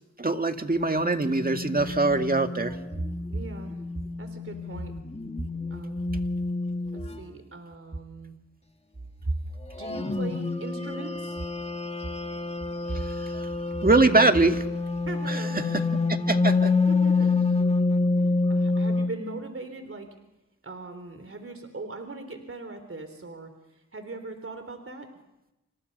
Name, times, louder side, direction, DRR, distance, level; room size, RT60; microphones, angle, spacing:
voice 1, 0.2-2.8 13.0-13.5 13.8-14.6 15.3-15.4 16.3-16.7, right 2 dB, 30° right, 6 dB, 2.1 m, -23 dB
sound 1, 1.0-7.2 9.8-19.1, left 3 dB, 20° left, 1.9 m, -28 dB
voice 2, 3.3-3.8 4.2-4.9 5.7-6.0 6.9-8.4 9.8-11.4 15.0-15.7 16.9-17.4 18.2-20.1 20.6-25.1, right 2 dB, 45° right, 7 dB, 3.8 m, -40 dB
29.0 x 26.0 x 5.5 m, 0.93 s
cardioid pair, 60°, 30 cm